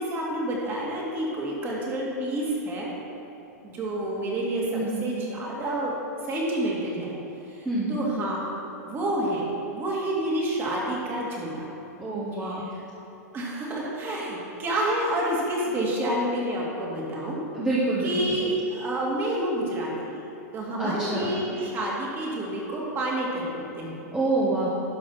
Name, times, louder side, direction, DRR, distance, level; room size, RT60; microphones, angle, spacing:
voice 1, 0.0-2.9 3.6-5.9 6.3-7.1 7.5-8.5 8.8-11.7 12.4-12.8 13.3-17.4 18.0-20.1 20.5-24.0, right 1 dB, 25° right, -3 dB, 2.2 m, -29 dB
voice 2, 4.7-5.1 7.6-8.0 12.0-12.7 15.7-15.9 17.5-18.4 20.8-21.4 24.1-24.7, right 2 dB, 10° right, -8 dB, 1.2 m, -27 dB
11.5 x 5.7 x 5.6 m, 3.0 s
hypercardioid pair, 145°, 9 cm